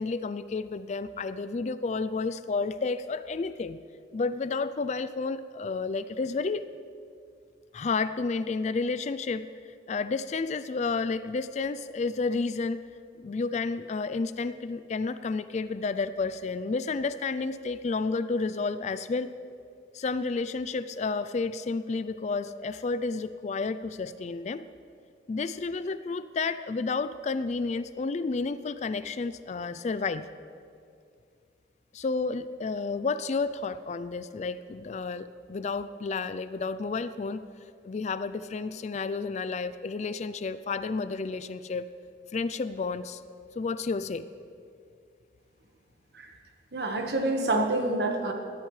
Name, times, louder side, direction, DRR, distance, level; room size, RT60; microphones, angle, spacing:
voice 1, 0.0-3.8 4.1-6.7 7.7-12.8 13.2-19.3 19.9-24.6 25.3-30.3 31.9-37.5 37.8-41.9 42.3-43.2 43.6-44.2, left 4 dB, 40° left, 13 dB, 0.3 m, -31 dB
voice 2, 46.7-48.3, right 2 dB, 60° right, 3 dB, 1.4 m, -27 dB
18.5 x 12.5 x 3.2 m, 2.4 s
head